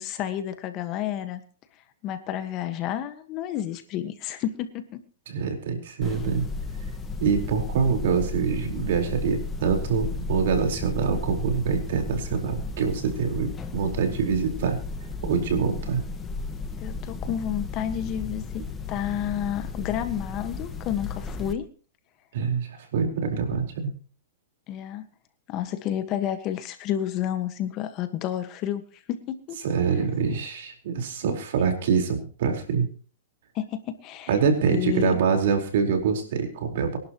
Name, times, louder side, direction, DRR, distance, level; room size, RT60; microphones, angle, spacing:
voice 1, 0.0-1.4 2.0-5.0 16.8-18.6 18.9-21.7 24.7-25.0 25.5-28.8 29.1-29.6 31.6-31.7 33.5-34.4 34.7-35.2, left 11 dB, 35° left, 9 dB, 1.5 m, -30 dB
voice 2, 5.3-6.4 7.2-14.8 15.2-16.0 22.3-23.9 29.6-32.9 34.3-37.0, right 6 dB, 65° right, 4 dB, 4.5 m, -25 dB
sound 1, 6.0-21.5, left 3 dB, 15° left, 1.4 m, -34 dB
24.0 x 11.5 x 3.1 m, 0.39 s
hypercardioid pair, 140°, 0 cm